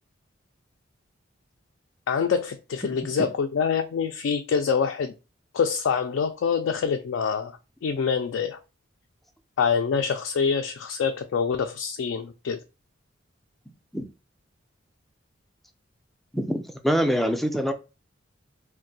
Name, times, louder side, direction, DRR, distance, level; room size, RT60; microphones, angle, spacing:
voice 1, 2.1-5.1 5.5-7.5 7.8-8.6 9.6-12.6, left 6 dB, 75° left, 0.3 m, -25 dB
voice 2, 16.3-17.7, equal, ahead, 0.3 m, -24 dB
2.5 x 2.2 x 3.9 m
head